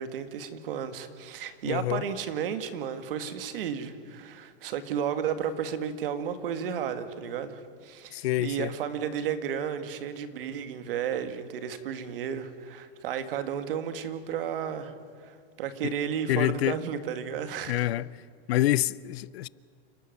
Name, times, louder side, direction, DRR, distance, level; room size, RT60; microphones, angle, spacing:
voice 1, 0.0-14.9 15.2-17.9, right 8 dB, 60° right, 2.0 m, -33 dB
voice 2, 1.6-2.0 8.1-8.7 15.8-15.9 16.3-16.8 17.7-18.1 18.5-19.5, left 15 dB, 70° left, 0.6 m, -26 dB
29.0 x 13.0 x 9.3 m
supercardioid pair, 180°, 32 cm